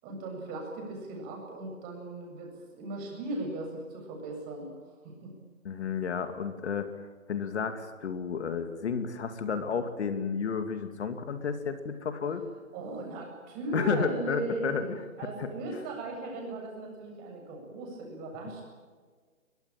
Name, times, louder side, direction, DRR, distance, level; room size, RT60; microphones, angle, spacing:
voice 1, 0.0-4.7 5.0-5.3 12.7-18.6, right 2 dB, 20° right, 1 dB, 7.9 m, -37 dB
voice 2, 5.6-6.9 7.3-12.4 13.7-14.9 15.4-15.5, left 6 dB, 55° left, 9 dB, 2.5 m, -31 dB
23.5 x 21.5 x 9.1 m, 1.5 s
figure-of-eight pair, 145°, 41 cm